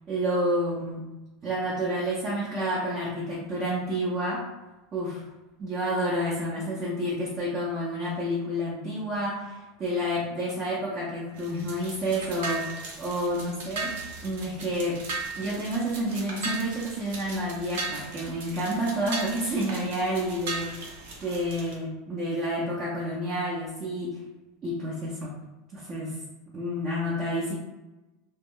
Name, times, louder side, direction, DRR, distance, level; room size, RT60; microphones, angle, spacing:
voice 1, 0.1-1.0 1.4-4.4 4.9-5.2 5.6-13.9 14.2-15.0 15.3-24.2 24.6-25.3 25.7-26.1 26.5-27.5, equal, 30° right, -7 dB, 0.7 m, -29 dB
sound 1, 11.3-21.7, right 3 dB, 80° right, 0.7 m, -37 dB
2.1 x 2.0 x 3.7 m, 1.1 s
supercardioid pair, 140°, 0 cm